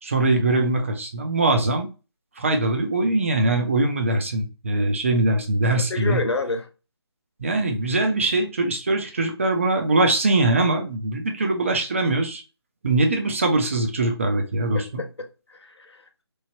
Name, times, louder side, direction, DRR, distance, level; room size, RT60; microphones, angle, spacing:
voice 1, 0.0-1.9 2.4-6.2 7.4-12.4 12.8-15.0, right 2 dB, 30° right, 0.4 m, -22 dB
voice 2, 5.7-6.7 14.7-16.2, left 3 dB, 75° left, 0.6 m, -30 dB
3.0 x 2.0 x 2.7 m
figure-of-eight pair, 155°, 14 cm